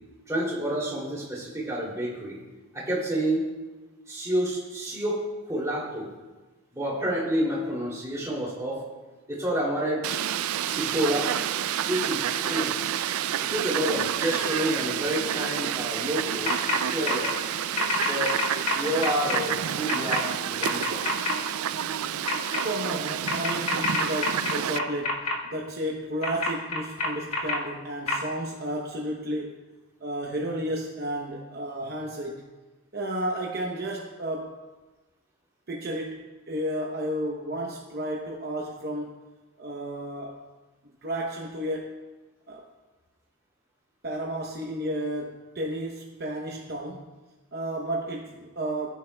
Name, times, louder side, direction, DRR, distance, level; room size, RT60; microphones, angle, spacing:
voice 1, 0.3-2.4 2.7-3.5 4.1-5.2 5.5-6.1 6.7-8.8 9.3-10.0 10.7-11.3 11.8-12.8 13.4-17.3 18.1-18.4 18.7-21.1, right 1 dB, 15° right, -5 dB, 2.7 m, -29 dB
Fowl, 10.0-24.8, right 9 dB, 75° right, 0.4 m, -29 dB
sound 1, 16.5-16.8 17.0-17.3 17.8-19.4 19.9-20.2 20.6-21.3 22.3-22.6 23.3-25.3 26.2-27.6 28.1-28.2, left 3 dB, 85° left, 1.6 m, -27 dB
voice 2, 22.6-29.6 30.0-32.4 32.9-34.6 35.7-39.1 39.6-40.4 41.0-42.0 42.5-42.7 44.0-47.2 47.5-48.9, right 1 dB, 45° right, -1 dB, 0.8 m, -32 dB
16.0 x 9.2 x 2.3 m, 1.2 s
head